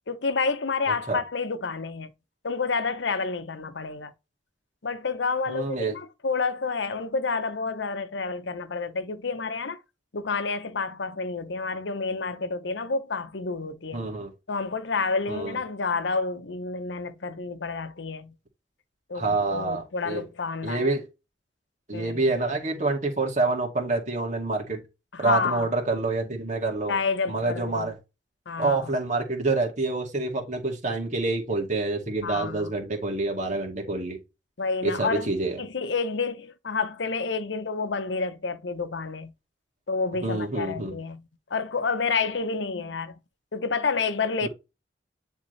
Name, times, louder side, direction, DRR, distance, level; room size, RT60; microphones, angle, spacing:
voice 1, 0.1-2.1 2.4-4.1 4.8-9.8 10.1-14.0 14.5-18.3 19.1-21.0 21.9-22.2 25.1-25.7 26.9-27.9 28.5-28.9 32.2-32.7 34.6-35.3 35.6-39.3 39.9-43.2 43.5-44.5, left 4 dB, 85° left, 0.8 m, -29 dB
voice 2, 5.5-5.9 13.9-14.3 15.3-15.6 19.1-20.3 20.6-21.1 21.9-24.8 25.2-27.0 27.3-28.0 28.6-34.2 34.8-35.6 40.2-41.0 44.4-44.5, right 3 dB, 40° right, 2.2 m, -27 dB
9.9 x 3.7 x 3.2 m
head